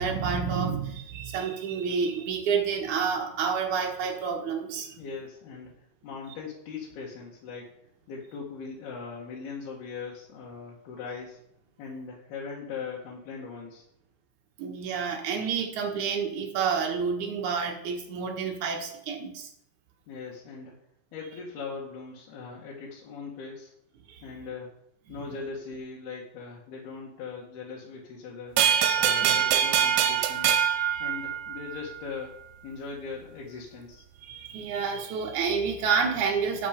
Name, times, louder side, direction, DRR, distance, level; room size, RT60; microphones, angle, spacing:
voice 1, 0.0-5.0 14.6-19.5 24.1-24.3 29.2-29.4 34.2-36.7, right 6 dB, 60° right, 1 dB, 2.1 m, -29 dB
voice 2, 5.0-7.7 8.1-11.4 11.8-13.8 20.1-20.7 21.1-23.7 24.2-24.7 25.1-28.6 29.0-30.6 31.0-32.3 32.6-34.0, left 5 dB, 60° left, -4 dB, 3.2 m, -40 dB
sound 1, 28.6-31.8, right 9 dB, 80° right, 3.1 m, -24 dB
11.5 x 8.1 x 5.2 m, 0.73 s
omnidirectional pair, 5.7 m